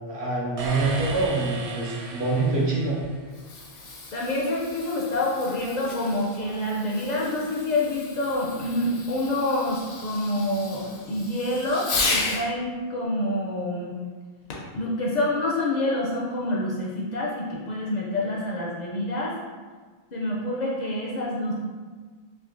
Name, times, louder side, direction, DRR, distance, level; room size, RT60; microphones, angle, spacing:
voice 1, 0.0-3.0, right 3 dB, 85° right, -4 dB, 1.0 m, -25 dB
sound 1, 0.6-3.4, right 3 dB, 50° right, 0.4 m, -35 dB
Fireworks, 3.2-12.5 14.5-14.8 15.5-15.6, left 3 dB, 75° left, 0.8 m, -34 dB
voice 2, 4.1-10.8 11.1-14.0 14.7-19.3 20.1-21.5, left 1 dB, 55° left, -4 dB, 0.5 m, -27 dB
3.5 x 2.6 x 2.4 m, 1.5 s
omnidirectional pair, 1.1 m